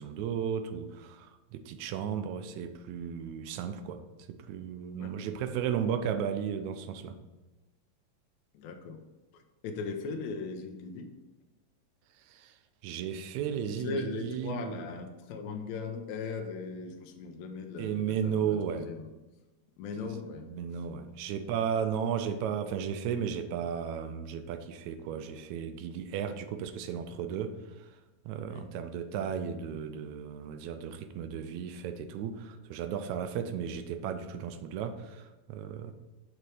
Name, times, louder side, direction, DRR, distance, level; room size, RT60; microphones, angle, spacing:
voice 1, 0.0-7.2 12.2-12.6 12.8-14.8 17.8-18.9 20.0-20.1 20.5-27.9 28.3-35.9, right 8 dB, 80° right, 9 dB, 1.9 m, -35 dB
voice 2, 8.5-9.0 9.3-11.1 13.8-19.1 19.8-20.5 28.5-28.7, left 4 dB, 80° left, 4 dB, 1.9 m, -38 dB
6.7 x 4.4 x 4.8 m, 1.1 s
omnidirectional pair, 3.3 m